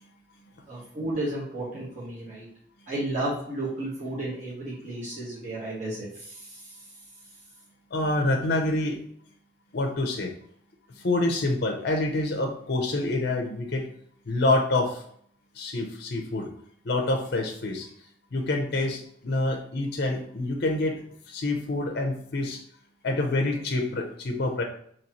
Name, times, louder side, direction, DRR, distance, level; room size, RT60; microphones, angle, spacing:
voice 1, 0.7-2.5 2.9-6.6, right 1 dB, 40° right, -8 dB, 1.4 m, -33 dB
voice 2, 7.9-9.0 9.7-10.3 11.0-13.9 14.3-15.0 15.6-16.5 16.9-17.9 18.3-21.0 21.3-22.6 23.0-24.6, left 2 dB, 55° left, 3 dB, 0.6 m, -27 dB
4.1 x 3.0 x 2.9 m, 0.65 s
head